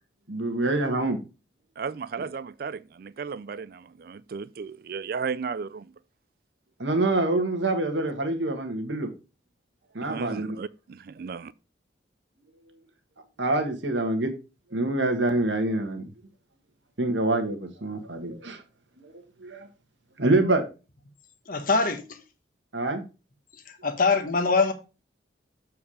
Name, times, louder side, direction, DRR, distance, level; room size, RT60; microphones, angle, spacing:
voice 1, 0.3-1.2 6.8-9.1 9.9-10.5 13.4-14.3 14.7-16.1 17.0-18.6 19.0-19.1 19.4-19.7 20.2-20.6 22.7-23.0, right 2 dB, 75° right, 1.5 m, -26 dB
voice 2, 1.8-5.9 10.0-11.5, right 5 dB, 50° right, 0.4 m, -35 dB
voice 3, 21.5-22.2 23.8-24.7, left 4 dB, 45° left, 1.0 m, -23 dB
7.4 x 4.7 x 4.9 m
head